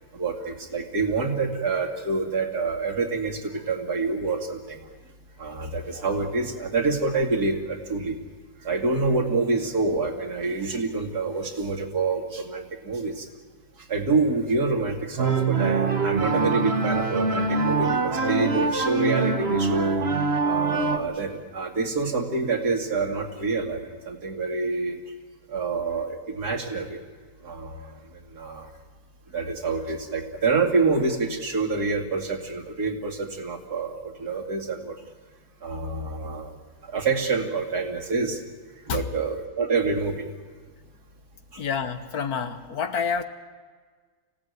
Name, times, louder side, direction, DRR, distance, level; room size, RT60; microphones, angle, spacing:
voice 1, 0.1-4.8 5.4-8.2 8.6-13.3 13.9-20.0 20.4-25.0 25.5-27.0 27.4-28.0 28.3-28.7 29.3-34.9 35.6-36.5 36.9-38.4 38.9-40.3 41.5-41.6, right 3 dB, 75° right, 3 dB, 2.8 m, -27 dB
sound 1, 15.2-21.0, right 3 dB, 40° right, 1.4 m, -24 dB
voice 2, 41.6-43.2, left 6 dB, 70° left, 9 dB, 1.7 m, -28 dB
25.0 x 16.5 x 9.5 m, 1.5 s
omnidirectional pair, 1.7 m